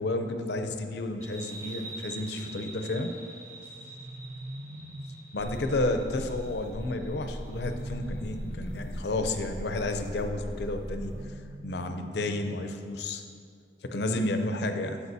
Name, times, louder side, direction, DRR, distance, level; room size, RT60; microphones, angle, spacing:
voice 1, 0.0-3.1 5.3-11.2 11.6-13.2 13.8-15.0, left 2 dB, 70° left, 6 dB, 0.6 m, -31 dB
sound 1, 1.2-8.4, right 2 dB, 15° right, 0.7 m, -46 dB
sound 2, 3.5-5.5 7.2-9.1 10.9-12.9, right 1 dB, 70° right, 0.7 m, -43 dB
sound 3, 5.4-11.2, equal, 50° right, 1.8 m, -39 dB
14.0 x 4.9 x 2.7 m, 2.2 s
head